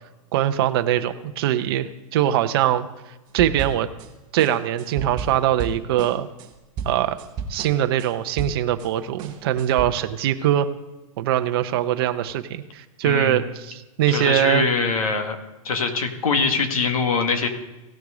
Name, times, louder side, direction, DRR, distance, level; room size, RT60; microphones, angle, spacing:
voice 1, 0.3-2.9 3.3-3.9 4.3-6.3 6.9-7.2 7.5-10.7 11.2-14.7, right 12 dB, 45° right, 8 dB, 0.7 m, -22 dB
sound 1, 3.4-4.1 4.4-8.9 9.2-9.8, right 4 dB, 25° right, 1.1 m, -33 dB
voice 2, 13.0-13.4 14.1-15.4 15.6-17.5, left 4 dB, 85° left, 5 dB, 2.0 m, -23 dB
17.0 x 6.5 x 3.8 m, 1.1 s
hypercardioid pair, 160°, 18 cm